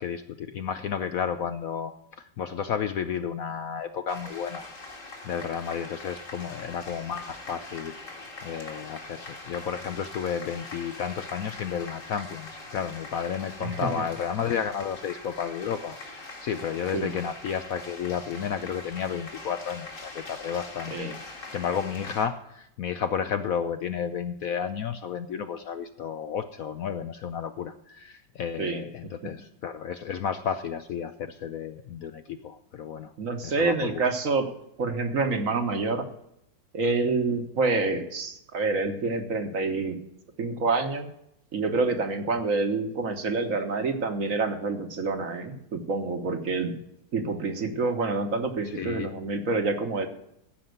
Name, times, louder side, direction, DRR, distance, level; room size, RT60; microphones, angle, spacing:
voice 1, 0.0-4.7 5.2-8.0 8.4-33.1 33.4-34.1 48.6-49.1, left 7 dB, 65° left, 9 dB, 0.9 m, -32 dB
sound 1, 4.1-22.3, left 2 dB, 45° left, 2.4 m, -42 dB
voice 2, 33.2-34.5 34.8-36.1 36.7-40.0 40.4-41.1 41.5-46.7 47.1-50.1, right 3 dB, 50° right, 6 dB, 1.5 m, -27 dB
14.5 x 5.7 x 7.9 m, 0.79 s
omnidirectional pair, 1.9 m